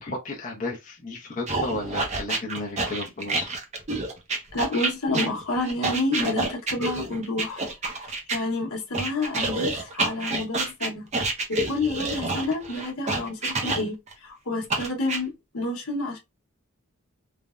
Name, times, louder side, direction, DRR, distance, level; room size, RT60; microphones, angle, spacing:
voice 1, 0.0-3.5, left 2 dB, 35° left, 0.6 m, -33 dB
sound 1, 1.5-8.4 8.9-14.1 14.7-15.2, right 2 dB, 30° right, 0.5 m, -28 dB
voice 2, 4.5-7.6 8.0-11.1 11.5-16.2, left 2 dB, 75° left, 0.9 m, -29 dB
3.3 x 2.1 x 2.3 m
head